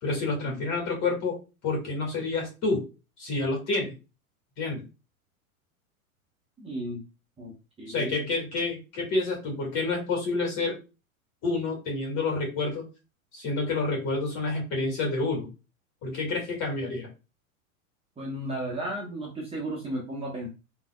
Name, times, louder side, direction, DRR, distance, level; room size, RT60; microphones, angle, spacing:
voice 1, 0.0-1.4 1.6-2.8 3.2-4.0 4.6-4.8 7.9-10.8 11.4-12.9 13.3-15.5 16.0-17.1, left 3 dB, 35° left, -1 dB, 1.9 m, -28 dB
voice 2, 6.6-7.0 7.4-8.3 18.2-20.5, right 1 dB, 15° right, -3 dB, 1.0 m, -34 dB
3.8 x 2.9 x 2.2 m, 0.29 s
hypercardioid pair, 100°, 43 cm